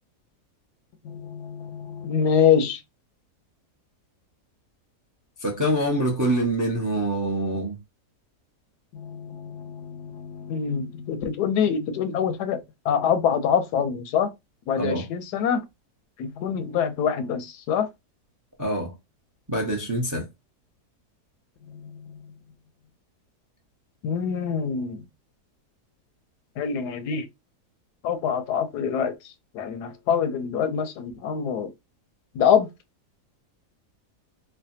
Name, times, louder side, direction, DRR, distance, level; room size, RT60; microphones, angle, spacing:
voice 1, 1.0-2.8 8.9-14.3 14.7-15.6 16.2-17.9 21.7-22.3 24.0-25.0 26.6-27.3 28.0-29.1 29.5-31.7 32.3-32.7, left 7 dB, 85° left, 1.2 m, -25 dB
voice 2, 5.4-7.8 14.7-15.1 18.6-18.9 19.5-20.3, right 1 dB, 25° right, 0.4 m, -25 dB
3.2 x 2.1 x 2.6 m
omnidirectional pair, 1.7 m